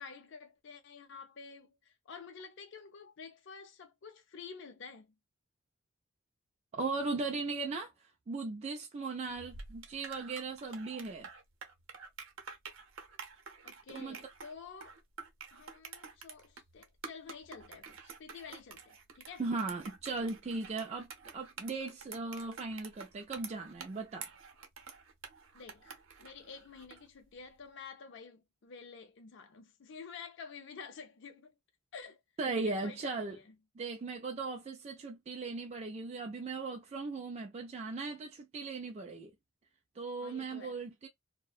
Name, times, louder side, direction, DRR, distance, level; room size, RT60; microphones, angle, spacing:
voice 1, 0.0-5.1 13.6-15.0 15.5-19.4 25.5-31.5 31.9-32.2 32.6-33.4 40.2-40.8, left 5 dB, 60° left, 0.4 m, -50 dB
voice 2, 6.7-11.3 13.9-14.2 19.4-24.3 32.4-33.4 33.8-39.3 40.0-41.1, right 3 dB, 30° right, 0.3 m, -38 dB
sound 1, 9.3-27.1, right 5 dB, 75° right, 0.7 m, -49 dB
2.6 x 2.1 x 2.3 m
head